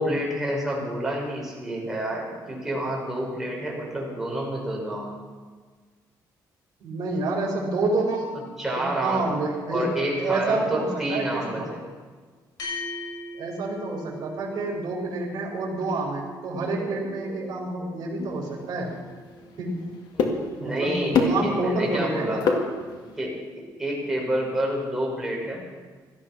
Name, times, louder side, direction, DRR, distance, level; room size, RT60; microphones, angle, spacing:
voice 1, 0.0-5.2 8.6-9.4 9.7-11.8 20.1-20.4 20.6-22.6 23.2-25.6, right 1 dB, 5° right, -2 dB, 5.5 m, -28 dB
voice 2, 6.8-8.3 8.7-9.9 10.2-11.7 13.3-18.9 19.6-19.8 20.6-22.4, right 3 dB, 55° right, -6 dB, 4.7 m, -28 dB
sound 1, 12.6-21.3, left 1 dB, 60° left, 6.6 m, -41 dB
sound 2, 16.5-19.5, right 5 dB, 35° right, 3.2 m, -44 dB
sound 3, 18.2-23.3, left 4 dB, 75° left, 2.0 m, -29 dB
17.5 x 13.0 x 6.0 m, 1.5 s
cardioid pair, 115°, 8 cm